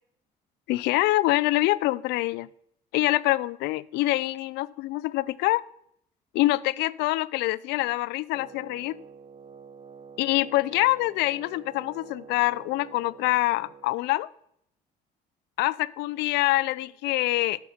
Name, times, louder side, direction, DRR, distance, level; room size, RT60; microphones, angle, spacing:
voice 1, 0.7-2.5 2.9-5.6 6.3-9.0 10.2-14.3 15.6-17.7, left 18 dB, 85° left, 21 dB, 0.4 m, -25 dB
Wind instrument woodwind instrument, 8.3-14.0, right 6 dB, 35° right, 0.8 m, -47 dB
12.5 x 5.3 x 5.9 m, 0.72 s
cardioid pair, 110°, 17 cm